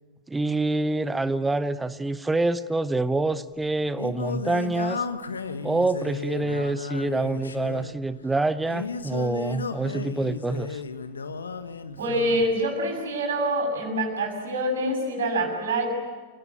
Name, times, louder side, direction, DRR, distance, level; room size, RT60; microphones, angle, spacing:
voice 1, 0.3-5.0 5.6-10.8, right 2 dB, 10° right, 15 dB, 0.8 m, -26 dB
Singing, 3.5-12.5, left 4 dB, 75° left, 1.3 m, -34 dB
voice 2, 12.0-15.9, right 1 dB, 65° right, 3 dB, 6.8 m, -26 dB
27.5 x 18.0 x 9.3 m, 1.4 s
figure-of-eight pair, 90°, 0 cm